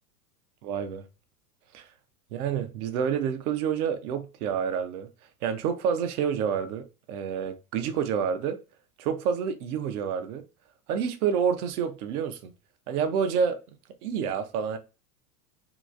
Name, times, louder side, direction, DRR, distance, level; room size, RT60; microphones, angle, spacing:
voice 1, 0.6-1.0 1.7-1.9 2.3-5.1 5.4-8.6 9.0-10.4 10.9-12.5 12.9-13.6 14.0-14.8, right 7 dB, 65° right, 0.7 m, -28 dB
2.9 x 2.4 x 2.4 m
hypercardioid pair, 105°, 48 cm